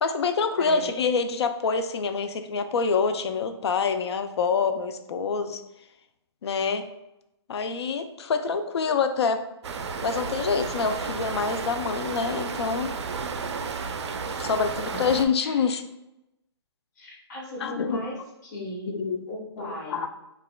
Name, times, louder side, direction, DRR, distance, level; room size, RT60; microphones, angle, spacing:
voice 1, 0.0-5.6 6.4-6.9 7.5-9.4 10.0-12.9 14.4-15.8 17.6-18.1 18.9-19.3 19.6-20.1, left 5 dB, 70° left, 8 dB, 0.4 m, -26 dB
voice 2, 0.6-0.9 14.8-15.1 15.4-15.6 17.0-18.2 18.4-18.9 19.3-20.0, left 1 dB, 40° left, -3 dB, 1.2 m, -37 dB
sound 1, 9.6-15.3, right 5 dB, 80° right, 0.4 m, -32 dB
4.0 x 2.3 x 2.2 m, 0.90 s
hypercardioid pair, 165°, 14 cm